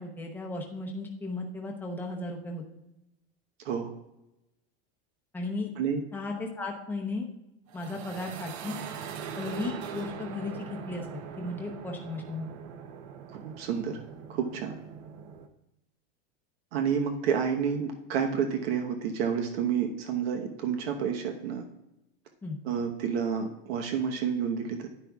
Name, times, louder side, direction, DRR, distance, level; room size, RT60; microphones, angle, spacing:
voice 1, 0.0-2.6 5.3-5.7 6.1-7.3 7.7-8.8 9.4-12.5 22.4-22.6, left 2 dB, 5° left, 0 dB, 0.8 m, -35 dB
sound 1, 7.7-15.5, right 7 dB, 40° right, 0.7 m, -41 dB
voice 2, 13.3-14.0 14.3-14.7 16.7-21.6 22.6-24.9, right 7 dB, 70° right, 4 dB, 1.1 m, -29 dB
10.0 x 9.8 x 2.3 m, 0.92 s
supercardioid pair, 165°, 32 cm